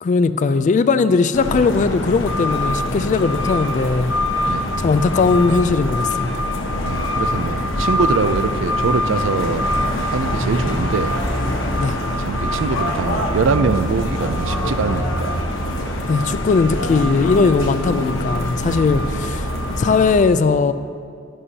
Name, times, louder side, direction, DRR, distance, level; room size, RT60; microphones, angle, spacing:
voice 1, 0.0-4.1 4.8-6.3 11.8-12.0 16.1-19.4 19.8-20.7, left 4 dB, 40° left, 13 dB, 0.3 m, -18 dB
sound 1, 1.3-20.1, left 1 dB, 80° left, 1.1 m, -23 dB
voice 2, 6.8-9.6 10.1-11.1 12.2-15.6 18.6-18.8, right 4 dB, 75° right, 12 dB, 0.4 m, -23 dB
11.0 x 11.0 x 2.8 m, 2.2 s
head